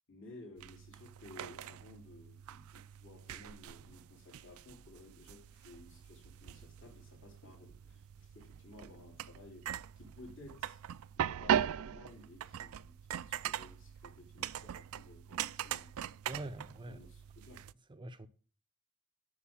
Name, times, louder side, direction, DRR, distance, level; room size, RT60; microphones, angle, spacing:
voice 1, 0.1-10.8 11.2-16.1 16.8-17.7, left 2 dB, 60° left, 3.6 m, -56 dB
sound 1, 0.6-17.7, right 9 dB, 70° right, 0.4 m, -41 dB
voice 2, 16.2-17.0 17.9-18.3, right 2 dB, 20° right, 0.6 m, -44 dB
8.4 x 6.6 x 7.1 m
head